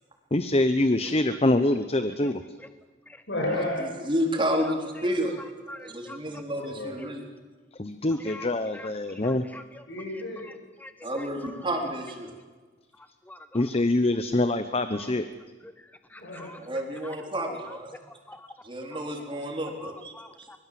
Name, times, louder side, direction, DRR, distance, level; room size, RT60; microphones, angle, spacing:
voice 1, 0.3-2.4 7.8-9.4 13.5-15.2, left 2 dB, 35° left, 10 dB, 0.9 m, -24 dB
voice 2, 3.3-4.0 6.2-7.0 9.8-10.5 16.2-16.5, left 1 dB, 85° left, 3 dB, 7.2 m, -32 dB
voice 3, 4.0-5.4 5.8-7.2 11.0-12.3 16.4-18.0 18.6-20.1 20.4-20.5, equal, 30° right, 2 dB, 4.0 m, -30 dB
voice 4, 5.7-6.2 7.0-7.1 8.2-9.8 10.4-10.5 10.8-11.6 13.3-13.7 14.9-15.1 15.6-16.6 16.9-17.8 18.3-18.5 19.8-20.6, left 1 dB, 10° left, 10 dB, 0.7 m, -46 dB
24.5 x 22.0 x 7.7 m, 1.4 s
head